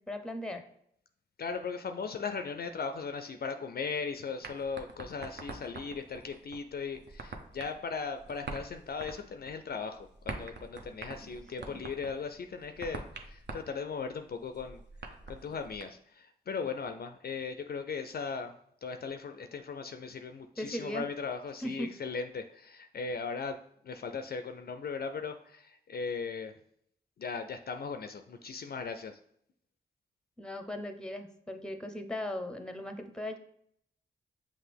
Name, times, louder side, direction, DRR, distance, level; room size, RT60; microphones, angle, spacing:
voice 1, 0.1-0.6 11.6-11.8 20.6-21.0 21.6-21.9 30.4-33.4, left 1 dB, 5° left, 7 dB, 0.7 m, -38 dB
voice 2, 1.4-14.8 15.3-26.5 27.2-29.2, left 5 dB, 50° left, 8 dB, 0.4 m, -38 dB
sound 1, 4.4-15.8, right 3 dB, 55° right, 0.7 m, -46 dB
5.9 x 2.4 x 3.4 m, 0.69 s
supercardioid pair, 40°, 21 cm